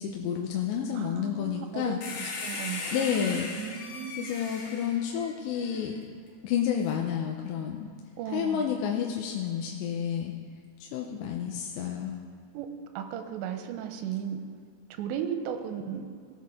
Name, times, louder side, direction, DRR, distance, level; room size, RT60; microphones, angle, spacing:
voice 1, 0.0-2.0 2.9-3.5 4.2-6.0 6.4-7.9 8.3-10.3 10.8-12.2, left 8 dB, 85° left, 0 dB, 3.0 m, -30 dB
voice 2, 0.9-4.3 8.2-8.7 12.5-12.7 13.0-14.4 15.0-16.1, right 8 dB, 85° right, 6 dB, 2.9 m, -36 dB
sound 1, 2.0-5.8 6.8-6.9, left 3 dB, 60° left, 2.3 m, -38 dB
18.0 x 7.8 x 3.6 m, 2.2 s
omnidirectional pair, 5.1 m